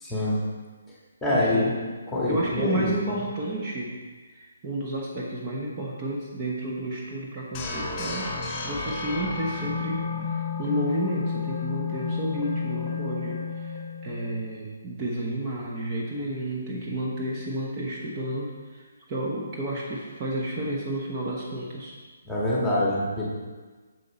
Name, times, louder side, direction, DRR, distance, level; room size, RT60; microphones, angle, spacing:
voice 1, 0.0-0.4 1.2-1.7 2.1-2.9 22.2-23.3, left 1 dB, 5° left, -5 dB, 1.7 m, -25 dB
voice 2, 1.3-1.7 2.3-3.9 4.2-10.0 10.3-22.0, right 1 dB, 30° right, -3 dB, 1.1 m, -31 dB
sound 1, 7.5-14.5, left 5 dB, 25° left, 1.5 m, -31 dB
6.7 x 6.5 x 4.2 m, 1.4 s
hypercardioid pair, 150°, 0 cm